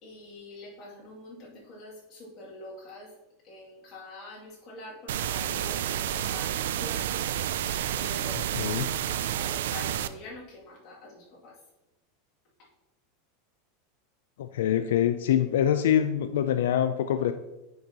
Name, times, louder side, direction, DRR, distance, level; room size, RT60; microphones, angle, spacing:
voice 1, 0.0-3.2 3.4-7.4 8.0-8.6 9.3-11.6 12.6-12.7, left 2 dB, 35° left, -5 dB, 2.4 m, -45 dB
sound 1, 5.1-10.1, right 11 dB, 80° right, 0.3 m, -30 dB
voice 2, 8.6-8.9 14.4-17.3, left 10 dB, 85° left, 9 dB, 0.4 m, -25 dB
9.4 x 5.3 x 2.9 m, 0.99 s
supercardioid pair, 165°, 0 cm